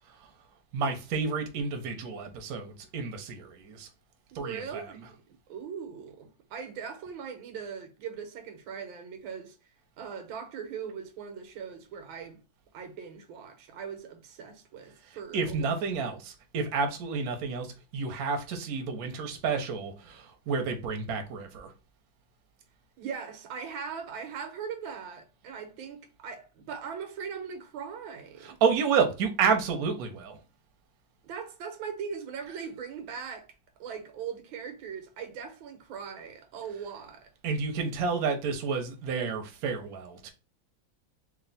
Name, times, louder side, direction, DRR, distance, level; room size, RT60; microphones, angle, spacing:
voice 1, 0.7-3.9 4.3-5.0 15.3-21.7 28.4-30.4 37.4-40.3, right 5 dB, 60° right, 1.1 m, -30 dB
voice 2, 4.3-5.2 5.5-9.6 10.0-12.4 12.7-15.7 23.0-28.6 31.2-33.5 33.8-37.3, right 6 dB, 90° right, 1.6 m, -40 dB
3.3 x 2.6 x 3.9 m
omnidirectional pair, 2.1 m